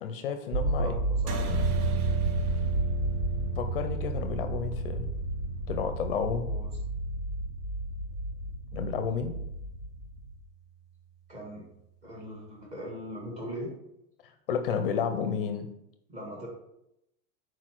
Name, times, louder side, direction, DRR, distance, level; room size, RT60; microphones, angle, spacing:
voice 1, 0.0-0.9 3.6-5.1 5.7-6.5 8.7-9.4 14.5-15.7, left 6 dB, 40° left, 8 dB, 0.5 m, -31 dB
sound 1, 0.5-10.3, right 1 dB, 45° right, 0.7 m, -32 dB
voice 2, 0.6-1.6 6.4-6.7 11.3-11.7 12.0-13.7 16.1-16.5, equal, 15° right, -2 dB, 1.3 m, -40 dB
sound 2, 1.3-6.1, right 5 dB, 75° right, 1.0 m, -40 dB
sound 3, 1.5-9.6, right 6 dB, 10° left, 1.0 m, -36 dB
6.2 x 4.6 x 4.4 m, 0.82 s
supercardioid pair, 175°, 44 cm